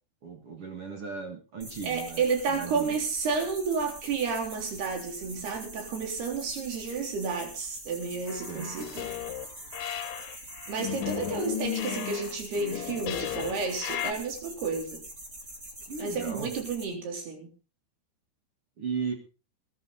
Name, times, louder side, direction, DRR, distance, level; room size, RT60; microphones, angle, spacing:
voice 1, 0.2-3.0 8.5-8.7 11.2-11.4 15.8-16.5 18.8-19.1, right 5 dB, 50° right, 4 dB, 1.9 m, -37 dB
sound 1, 1.6-16.8, right 1 dB, 25° right, 2.9 m, -44 dB
voice 2, 1.8-9.1 10.7-15.0 16.0-17.5, right 5 dB, 70° right, 3 dB, 5.5 m, -31 dB
sound 2, 8.3-9.5 9.7-14.1, left 11 dB, 65° left, 2.5 m, -35 dB
20.0 x 11.0 x 4.0 m, 0.33 s
omnidirectional pair, 4.8 m